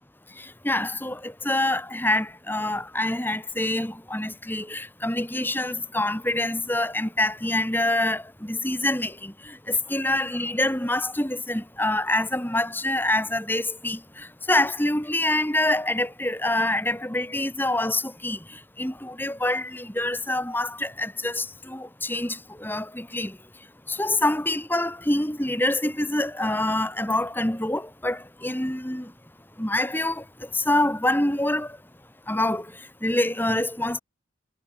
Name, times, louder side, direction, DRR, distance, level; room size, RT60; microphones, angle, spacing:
voice 1, 0.4-18.4 18.8-23.4 23.9-29.1 29.6-30.2 30.5-31.7 32.3-32.7 33.0-34.0, left 1 dB, 10° left, 2.7 m, -26 dB
head